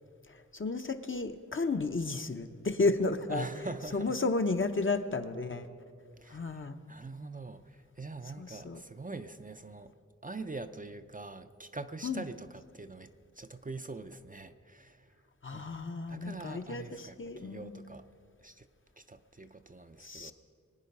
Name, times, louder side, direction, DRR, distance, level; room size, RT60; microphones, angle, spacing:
voice 1, 0.5-3.5 3.9-5.6 6.3-6.8 8.4-8.8 12.0-12.2 15.4-17.7 20.0-20.3, left 3 dB, 40° left, 7 dB, 0.8 m, -32 dB
voice 2, 3.3-4.2 6.2-9.9 10.2-15.2 15.5-18.0 18.4-18.7 19.0-20.3, right 3 dB, 25° right, 8 dB, 0.5 m, -44 dB
22.0 x 9.3 x 5.4 m, 2.2 s
wide cardioid pair, 75°, 31 cm